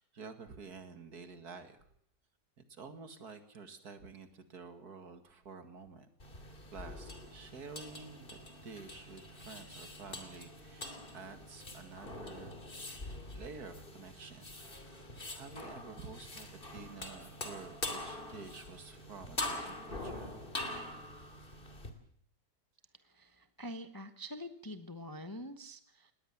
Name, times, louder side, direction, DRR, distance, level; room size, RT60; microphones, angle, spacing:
voice 1, 0.0-1.9 2.7-6.1 6.7-12.5 13.3-14.5 14.8-20.4, right 4 dB, 65° right, 9 dB, 2.5 m, -50 dB
sound 1, 6.2-21.9, left 2 dB, 30° left, 2.8 m, -44 dB
voice 2, 23.0-26.1, equal, 15° left, 10 dB, 0.9 m, -46 dB
20.0 x 18.5 x 7.3 m, 0.65 s
omnidirectional pair, 1.8 m